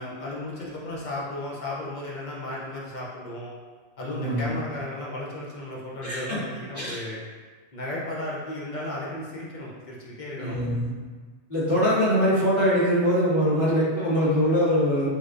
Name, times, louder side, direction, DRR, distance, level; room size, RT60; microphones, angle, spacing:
voice 1, 0.0-3.5 4.0-7.2 7.7-10.6, left 1 dB, 50° left, -5 dB, 0.7 m, -34 dB
voice 2, 4.1-4.5 6.0-6.4 6.7-7.0 10.4-10.8 11.5-15.1, equal, 30° left, -11 dB, 1.3 m, -23 dB
3.2 x 3.1 x 2.5 m, 1.5 s
omnidirectional pair, 1.1 m